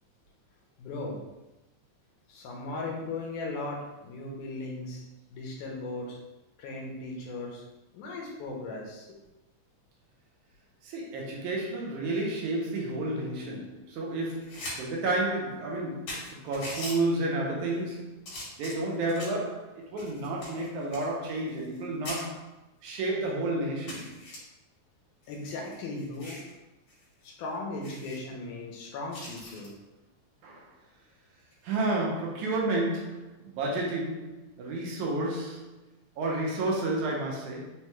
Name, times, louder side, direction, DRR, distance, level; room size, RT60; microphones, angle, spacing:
voice 1, 0.8-1.2 2.3-5.0 5.3-6.2 6.6-7.6 7.9-9.2 25.3-26.4 27.2-29.7, left 2 dB, 80° left, -1 dB, 2.2 m, -37 dB
voice 2, 10.8-18.2 18.6-22.5 22.8-24.2 30.4-30.7 31.6-35.8 36.2-37.7, right 2 dB, 80° right, -2 dB, 2.1 m, -31 dB
sound 1, 14.3-14.8 15.1-15.2 15.8-15.9 16.1-17.0 17.7-17.9 18.3-19.4 20.0-21.8 22.1-22.2 22.9-23.0 23.3-23.4 23.9-24.4 25.2-26.5 26.9-27.0 27.3-27.4 27.8-28.2 29.1-29.7 31.4-31.7, left 1 dB, 65° left, 2.3 m, -41 dB
5.2 x 2.2 x 3.0 m, 0.98 s
omnidirectional pair, 3.5 m